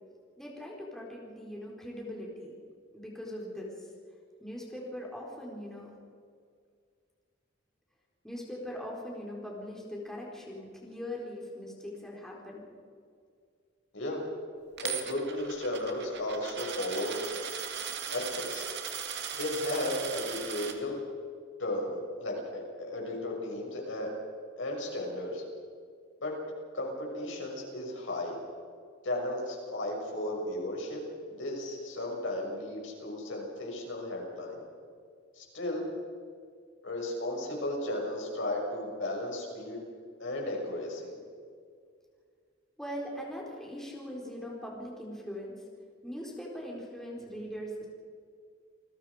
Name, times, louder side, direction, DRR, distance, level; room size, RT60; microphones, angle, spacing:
voice 1, 0.4-2.5 2.9-3.9 4.4-5.9 8.2-12.6 42.8-45.6 46.0-47.9, equal, 5° left, -3 dB, 4.3 m, -41 dB
voice 2, 14.8-17.2 18.1-18.7 19.4-21.0 21.6-24.1 24.6-25.4 26.2-26.4 26.7-28.4 29.0-31.0 31.3-34.6 35.3-35.9 36.8-39.8 40.2-41.1, left 1 dB, 70° left, -1 dB, 6.5 m, -34 dB
Coin (dropping), 14.8-20.7, right 7 dB, 60° right, 2.4 m, -38 dB
29.0 x 20.0 x 5.1 m, 2.1 s
head